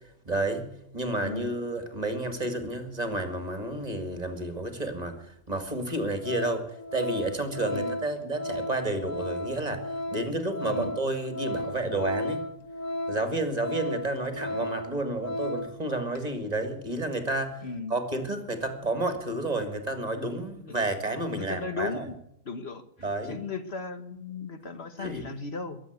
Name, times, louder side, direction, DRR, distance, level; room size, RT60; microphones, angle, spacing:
voice 1, 0.3-12.5 13.1-17.6 17.9-22.1 23.0-23.4 25.0-25.3, right 2 dB, 30° right, 7 dB, 2.2 m, -31 dB
voice 2, 1.2-1.6 7.7-8.0 10.7-11.0 17.6-17.9 20.5-20.7 21.3-22.1 22.4-22.8 23.2-25.8, left 4 dB, 55° left, 9 dB, 1.4 m, -36 dB
Organ, 5.2-5.3 5.8-6.0 6.2-15.8 16.1-16.3, left 1 dB, 75° left, 2.0 m, -35 dB
22.5 x 7.8 x 8.1 m, 0.78 s
omnidirectional pair, 1.4 m